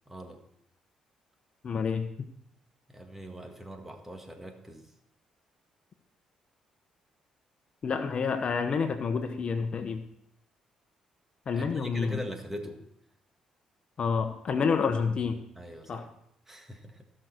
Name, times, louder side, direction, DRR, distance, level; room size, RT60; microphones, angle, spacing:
voice 1, 0.1-0.4 2.9-4.9 11.5-12.8 15.5-16.1 16.5-17.0, equal, 15° right, 4 dB, 1.8 m, -41 dB
voice 2, 1.6-2.1 7.8-10.0 11.5-12.2 14.0-15.4 15.9-16.0, left 5 dB, 50° left, 8 dB, 1.0 m, -28 dB
15.0 x 6.5 x 4.5 m, 0.73 s
cardioid pair, 75°, 2 cm